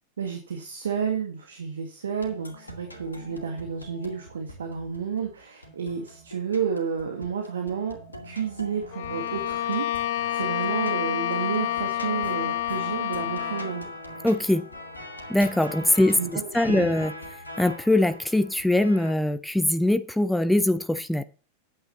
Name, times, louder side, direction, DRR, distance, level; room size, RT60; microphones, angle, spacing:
voice 1, 0.2-8.0 8.2-14.0 15.9-16.9, right 6 dB, 65° right, 1.8 m, -31 dB
sound 1, 2.2-19.1, left 1 dB, 80° left, 2.2 m, -42 dB
Bowed string instrument, 8.9-13.8, left 12 dB, 50° left, 0.9 m, -28 dB
voice 2, 14.2-14.7 15.3-17.1 17.6-21.2, left 1 dB, 5° left, 0.6 m, -22 dB
9.8 x 9.0 x 4.1 m
figure-of-eight pair, 90°, 0 cm